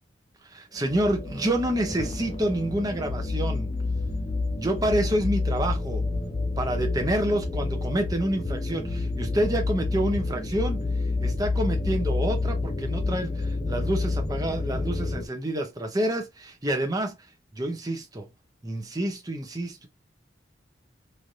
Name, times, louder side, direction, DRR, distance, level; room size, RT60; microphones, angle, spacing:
voice 1, 0.4-3.7 4.5-6.0 6.6-10.8 11.2-17.2 17.5-18.3 18.6-19.9, right 1 dB, 20° right, 0.7 m, -28 dB
sound 1, 0.8-15.3, left 3 dB, 25° left, 0.5 m, -29 dB
3.2 x 2.6 x 2.6 m
head